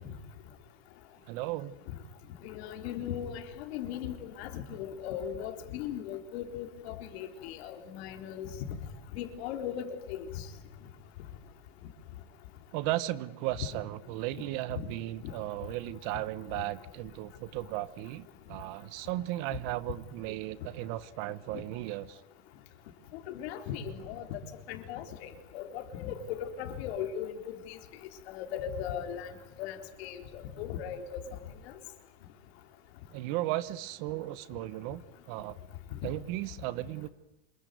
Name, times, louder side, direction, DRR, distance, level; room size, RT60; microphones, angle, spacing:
voice 1, 1.3-1.7 12.7-22.2 33.1-35.5 36.0-37.1, right 16 dB, 40° right, 16 dB, 1.1 m, -35 dB
voice 2, 2.4-8.5 9.1-10.3 15.2-15.3 23.3-24.4 24.7-25.3 25.5-27.8 28.3-29.3 29.6-31.2, left 9 dB, 55° left, 6 dB, 4.0 m, -38 dB
27.0 x 22.0 x 9.4 m, 0.85 s
supercardioid pair, 165°, 38 cm